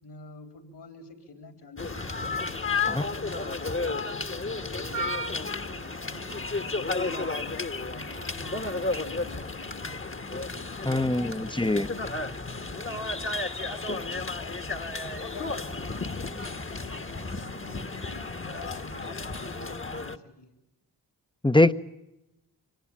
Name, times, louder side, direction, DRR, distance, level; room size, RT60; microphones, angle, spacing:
voice 1, 0.0-4.0 4.4-10.5 10.9-14.8 15.3-20.5, left 3 dB, 65° left, 7 dB, 4.3 m, -47 dB
sound 1, 1.8-20.2, left 3 dB, 30° left, 1.5 m, -33 dB
voice 2, 10.9-11.9 21.4-21.7, left 2 dB, 10° left, 12 dB, 0.9 m, -22 dB
24.5 x 19.5 x 8.8 m, 0.91 s
cardioid pair, 45°, 43 cm